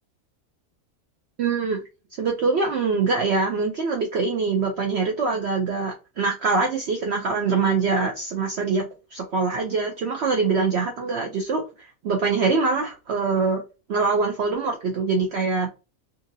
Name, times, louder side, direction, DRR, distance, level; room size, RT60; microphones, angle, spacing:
voice 1, 1.4-1.8 2.2-8.8 9.1-11.6 12.0-13.6 13.9-15.7, right 4 dB, 65° right, 2 dB, 0.7 m, -23 dB
2.7 x 2.6 x 2.6 m, 0.29 s
omnidirectional pair, 1.5 m